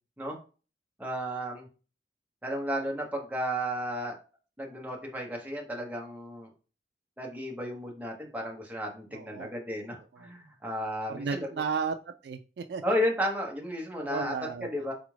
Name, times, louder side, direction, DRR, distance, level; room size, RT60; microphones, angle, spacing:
voice 1, 1.0-1.7 2.4-4.2 4.6-6.5 7.2-11.5 12.8-14.9, equal, 10° right, -1 dB, 0.9 m, -33 dB
voice 2, 9.1-9.5 10.1-10.3 11.1-12.0 12.2-12.8 14.0-14.7, right 5 dB, 65° right, 8 dB, 0.3 m, -34 dB
4.0 x 2.4 x 3.2 m, 0.35 s
head